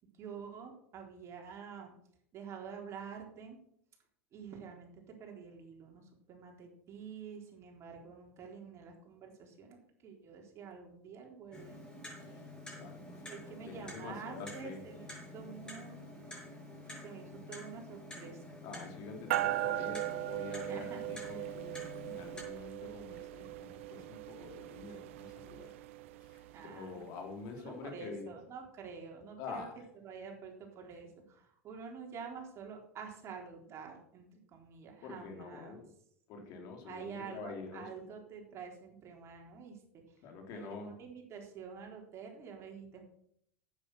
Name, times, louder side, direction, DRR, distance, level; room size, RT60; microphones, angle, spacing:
voice 1, 0.1-1.9 2.3-3.6 4.3-9.8 10.0-11.8 13.2-15.1 15.3-16.5 16.8-18.5 20.7-21.5 26.5-27.0 27.6-29.7 30.0-35.8 36.8-39.8 40.1-40.2 40.5-43.0, right 6 dB, 40° right, 1 dB, 3.9 m, -48 dB
Clock, 11.5-22.4, left 1 dB, 10° left, 6.3 m, -49 dB
voice 2, 12.7-14.8 18.6-25.8 26.2-28.3 29.4-29.7 35.0-35.9 36.3-37.9 40.2-40.9, left 4 dB, 55° left, 3 dB, 3.4 m, -46 dB
sound 1, 19.3-27.0, right 15 dB, 70° right, 0.7 m, -39 dB
10.5 x 9.1 x 6.4 m, 0.70 s
hypercardioid pair, 95°, 7 cm